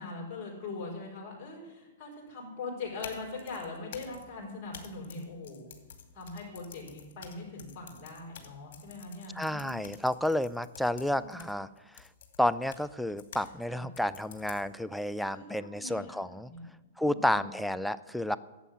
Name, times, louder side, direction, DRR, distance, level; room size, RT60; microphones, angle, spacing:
voice 1, 0.0-5.7 6.1-9.7 10.8-11.4 13.7-13.9 15.3-16.2 16.5-16.7 17.0-17.5, left 3 dB, 35° left, -3 dB, 5.3 m, -42 dB
sound 1, 2.8-13.5 14.0-14.9, left 7 dB, 60° left, 2.4 m, -50 dB
voice 2, 9.4-12.1 12.4-16.5 17.0-18.4, left 1 dB, ahead, 14 dB, 0.4 m, -31 dB
11.5 x 8.3 x 9.8 m, 1.2 s
hypercardioid pair, 125°, 0 cm